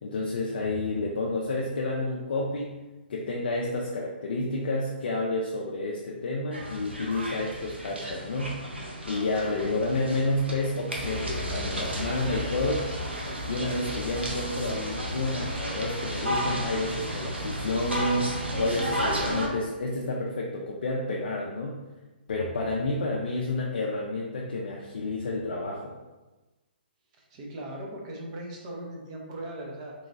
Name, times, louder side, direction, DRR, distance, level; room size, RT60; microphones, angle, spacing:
voice 1, 0.0-2.7 3.1-8.6 9.0-12.9 13.5-21.8 22.3-25.9, left 2 dB, 65° left, -2 dB, 0.4 m, -30 dB
sound 1, 6.5-19.5, equal, 90° right, 0.7 m, -33 dB
voice 2, 27.2-29.9, right 1 dB, 35° right, -1 dB, 0.7 m, -39 dB
3.0 x 2.8 x 2.6 m, 1.1 s
figure-of-eight pair, 130°, 6 cm